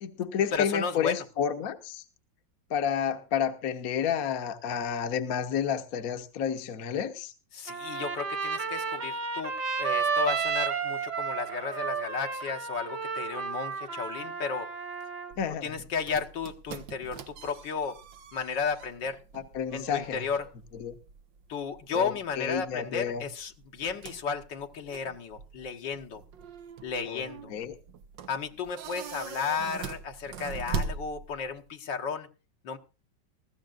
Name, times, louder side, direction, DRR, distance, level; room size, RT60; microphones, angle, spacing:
voice 1, 0.0-2.0 2.7-7.3 15.4-15.8 19.3-20.3 20.7-20.9 21.9-23.3 27.1-27.2 27.5-27.8, left 8 dB, 55° left, 1.4 m, -30 dB
voice 2, 0.5-1.2 7.5-9.5 9.8-14.7 15.6-18.0 18.3-19.2 19.7-20.4 21.5-26.2 26.8-27.5 28.3-32.3 32.6-32.8, left 5 dB, 75° left, 2.0 m, -33 dB
Trumpet, 7.7-15.3, right 5 dB, 65° right, 2.5 m, -32 dB
sound 1, 15.3-31.7, right 5 dB, 85° right, 1.7 m, -42 dB
19.5 x 15.5 x 2.5 m
omnidirectional pair, 1.9 m